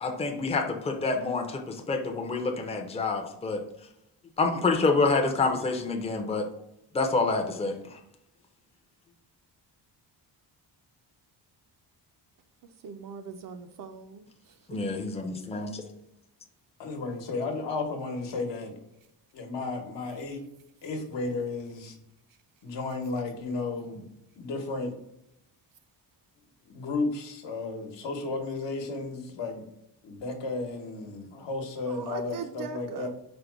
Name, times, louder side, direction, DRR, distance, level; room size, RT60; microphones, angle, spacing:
voice 1, 0.0-3.6 4.4-6.5 6.9-8.0 14.7-15.8, left 3 dB, 15° left, 0.5 m, -27 dB
voice 2, 12.8-14.3 31.9-33.1, right 6 dB, 50° right, 0.4 m, -39 dB
voice 3, 16.8-18.7 19.3-20.4 20.8-22.0 22.6-24.1 24.4-24.9 26.7-29.6 30.0-33.1, left 3 dB, 75° left, 1.0 m, -33 dB
5.1 x 2.1 x 4.5 m
wide cardioid pair, 165°, 43 cm